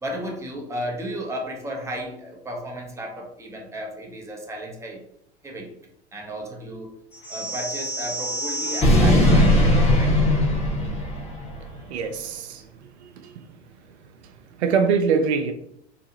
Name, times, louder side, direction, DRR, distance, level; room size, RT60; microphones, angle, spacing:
voice 1, 0.0-5.0 5.4-5.7 6.1-6.9 7.3-10.2, equal, 10° right, 0 dB, 0.8 m, -34 dB
sound 1, 7.2-11.6, left 1 dB, 20° left, 1.1 m, -20 dB
voice 2, 11.5-13.4 14.2-15.5, right 5 dB, 75° right, 6 dB, 0.5 m, -25 dB
3.8 x 2.4 x 2.8 m, 0.74 s
hypercardioid pair, 90°, 34 cm